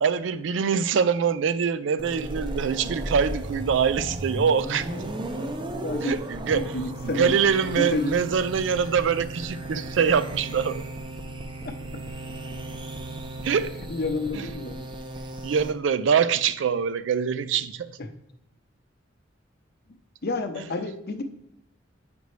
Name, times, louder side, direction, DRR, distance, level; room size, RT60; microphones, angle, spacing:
voice 1, 0.0-4.9 6.0-6.7 7.0-10.8 13.4-13.7 14.3-14.5 15.4-18.0, right 6 dB, 75° right, 0.4 m, -24 dB
sound 1, 2.0-15.7, right 1 dB, 25° right, 0.5 m, -35 dB
voice 2, 5.8-6.2 6.5-8.2 13.9-14.8 18.0-18.1 20.2-21.2, left 2 dB, 55° left, 0.7 m, -30 dB
8.0 x 5.2 x 3.2 m
head